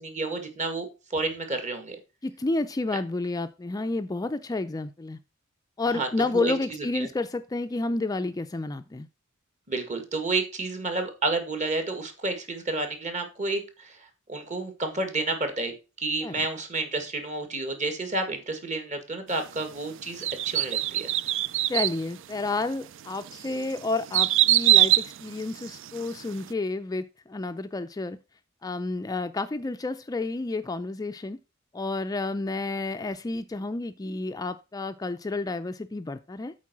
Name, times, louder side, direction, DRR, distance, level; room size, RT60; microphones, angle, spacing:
voice 1, 0.0-2.0 5.9-6.5 6.9-7.1 9.7-14.0 14.3-21.1, right 3 dB, 35° right, 1.9 m, -30 dB
voice 2, 2.2-5.2 5.8-9.1 16.2-16.5 21.7-28.2 28.6-31.4 31.7-36.5, left 3 dB, 20° left, 0.4 m, -30 dB
sound 1, 20.2-22.0 22.6-22.7 23.3-26.1 26.4-26.5, right 14 dB, 65° right, 0.4 m, -23 dB
8.3 x 4.6 x 6.1 m
head